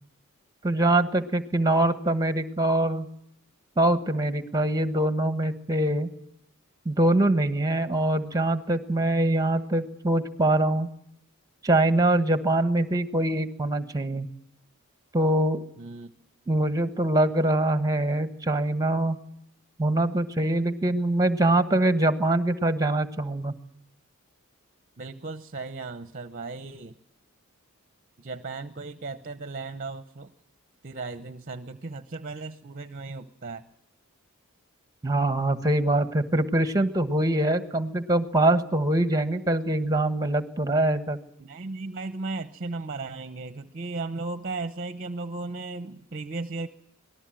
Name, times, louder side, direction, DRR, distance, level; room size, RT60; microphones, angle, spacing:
voice 1, 0.6-3.1 3.8-6.1 6.8-10.9 11.6-14.3 15.1-15.6 16.5-19.2 19.8-23.5 35.0-41.2, right 1 dB, 15° right, 11 dB, 1.4 m, -23 dB
voice 2, 15.8-16.1 25.0-26.9 28.2-30.3 30.8-33.6 41.4-46.7, right 3 dB, 40° right, 12 dB, 0.9 m, -36 dB
25.5 x 19.0 x 7.6 m, 0.77 s
head